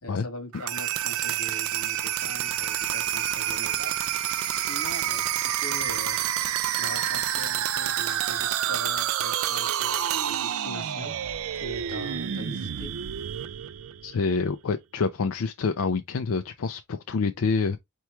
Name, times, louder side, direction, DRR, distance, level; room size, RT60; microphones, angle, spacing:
voice 1, 0.0-3.9 4.6-6.2 6.8-11.1 11.5-12.9, left 1 dB, 85° left, 1.5 m, -41 dB
sound 1, 0.5-14.4, right 11 dB, 65° right, 0.4 m, -28 dB
voice 2, 14.0-17.8, left 4 dB, 65° left, 0.4 m, -27 dB
4.5 x 3.0 x 3.4 m
head